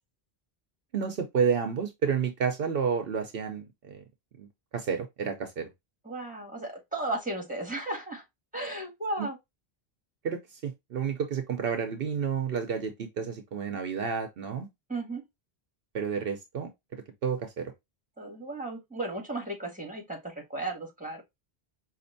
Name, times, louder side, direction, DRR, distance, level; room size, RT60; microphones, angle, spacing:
voice 1, 0.9-4.0 4.4-5.7 9.2-9.3 10.2-14.7 15.9-17.7, right 6 dB, 70° right, 0.9 m, -30 dB
voice 2, 6.0-8.2 8.5-9.4 14.9-15.2 18.2-21.2, right 2 dB, 10° right, 1.7 m, -35 dB
5.1 x 2.8 x 2.6 m
omnidirectional pair, 1.0 m